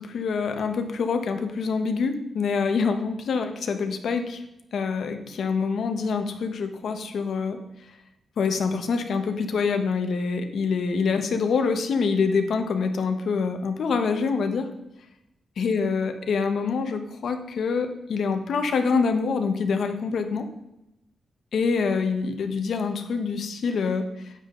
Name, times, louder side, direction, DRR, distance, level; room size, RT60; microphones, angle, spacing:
voice 1, 0.0-4.4 4.7-7.6 8.4-14.7 15.6-20.5 21.5-24.3, left 5 dB, 65° left, 6 dB, 1.4 m, -25 dB
12.5 x 9.4 x 4.0 m, 0.87 s
wide cardioid pair, 155°, 0 cm